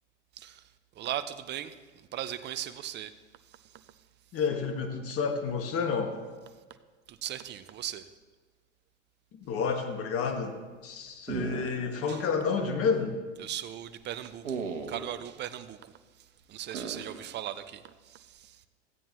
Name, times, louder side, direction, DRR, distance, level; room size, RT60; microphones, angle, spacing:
voice 1, 0.3-3.2 3.4-4.0 7.1-8.1 12.1-12.2 13.4-18.7, right 11 dB, 30° right, 0.6 m, -39 dB
voice 2, 4.3-6.1 9.3-10.6 10.8-13.2, left 5 dB, 40° left, 1.6 m, -30 dB
sound 1, 11.3-12.1 12.4-12.5 14.4-15.2 16.7-17.3, right 5 dB, 85° right, 1.1 m, -36 dB
15.0 x 9.0 x 3.1 m
hypercardioid pair, 90°, 37 cm